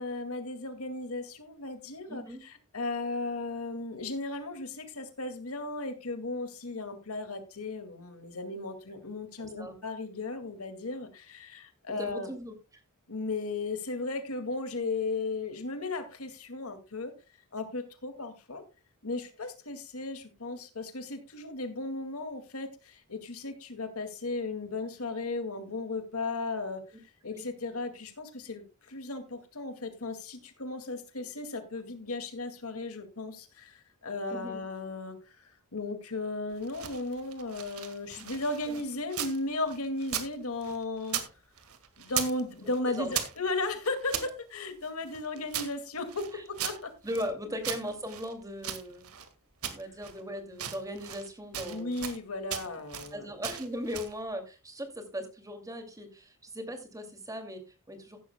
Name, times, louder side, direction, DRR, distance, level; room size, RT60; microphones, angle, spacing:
voice 1, 0.0-12.3 13.1-17.1 17.5-18.6 19.0-26.8 27.2-41.2 42.0-46.9 51.5-53.3, left 3 dB, 70° left, 8 dB, 2.2 m, -36 dB
voice 2, 2.1-2.4 9.4-9.8 12.0-12.5 26.9-27.0 27.3-27.5 34.3-34.6 38.2-38.3 38.7-38.8 42.8-43.1 46.3-46.4 47.0-49.1 49.7-52.0 53.1-58.2, equal, 15° right, 6 dB, 2.4 m, -38 dB
sound 1, 36.5-39.4 39.7-41.3 41.6-42.4 42.7-44.3 44.8-47.3 47.6-49.3 49.6-50.2 50.5-51.3 51.5-52.2 52.5-53.1 53.4-54.2, right 9 dB, 75° right, 1.8 m, -38 dB
15.5 x 11.5 x 2.2 m, 0.29 s
head